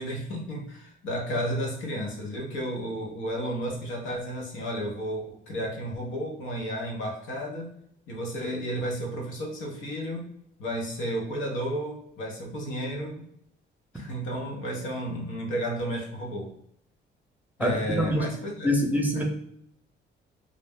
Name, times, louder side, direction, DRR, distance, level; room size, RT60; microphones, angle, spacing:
voice 1, 0.0-7.7 8.1-10.3 10.6-13.3 13.9-16.5 17.6-18.7 19.1-19.2, equal, 85° left, 0 dB, 0.9 m, -32 dB
voice 2, 17.6-18.3 18.6-19.2, equal, 10° right, 0 dB, 0.7 m, -25 dB
2.5 x 2.0 x 3.4 m, 0.71 s
cardioid pair, 90°, 20 cm